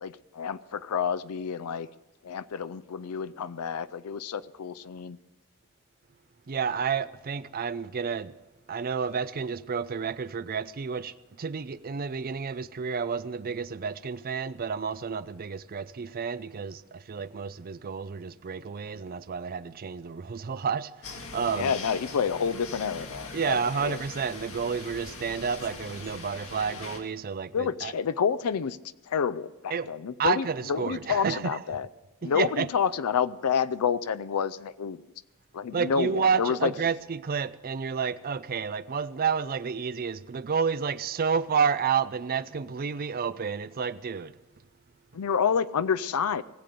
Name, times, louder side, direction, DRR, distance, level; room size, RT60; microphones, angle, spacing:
voice 1, 0.0-1.9 2.2-5.2 21.5-23.6 23.8-24.0 27.5-28.8 29.1-31.9 32.2-35.0 35.5-36.7 45.1-46.4, left 6 dB, 80° left, 0.5 m, -29 dB
voice 2, 6.5-8.3 8.7-21.7 23.3-27.9 29.7-29.9 30.2-31.6 32.2-32.7 35.7-44.3, right 6 dB, 40° right, 0.4 m, -30 dB
sound 1, 21.0-27.0, left 3 dB, 65° left, 2.0 m, -41 dB
19.5 x 7.7 x 6.7 m
head